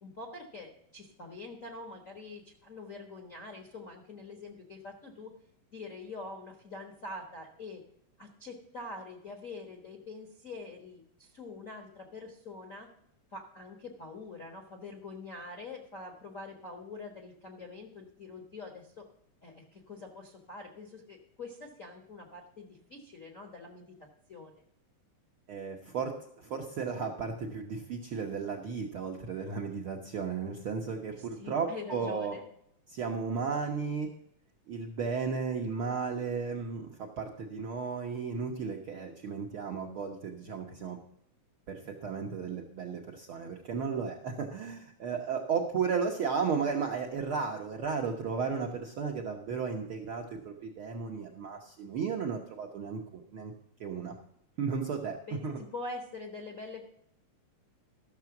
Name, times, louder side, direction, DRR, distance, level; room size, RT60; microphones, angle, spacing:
voice 1, 0.0-5.3 5.7-7.8 8.2-12.9 13.3-19.0 19.4-23.9 24.3-24.5 31.1-32.4 55.3-56.9, left 3 dB, 50° left, 1 dB, 1.0 m, -45 dB
voice 2, 25.5-32.4 32.9-34.1 34.7-41.0 41.7-53.5 53.8-54.2 54.6-55.2 55.4-55.6, right 5 dB, 65° right, 1 dB, 1.3 m, -34 dB
13.5 x 6.8 x 5.9 m, 0.70 s
omnidirectional pair, 3.6 m